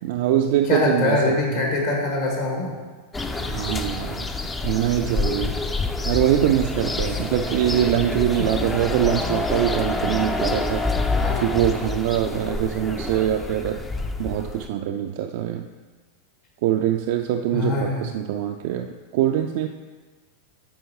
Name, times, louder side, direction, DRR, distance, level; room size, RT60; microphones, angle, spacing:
voice 1, 0.0-1.7 3.5-4.3 4.6-5.6 6.0-11.1 11.4-13.8 14.2-15.7 16.6-19.7, right 11 dB, 50° right, 4 dB, 0.3 m, -23 dB
voice 2, 0.7-2.7 11.1-11.5 17.5-18.1, left 3 dB, 55° left, -2 dB, 1.9 m, -23 dB
sound 1, 3.1-14.7, left 3 dB, 15° left, 0.5 m, -27 dB
12.0 x 4.9 x 3.1 m, 1.3 s
figure-of-eight pair, 90°, 0 cm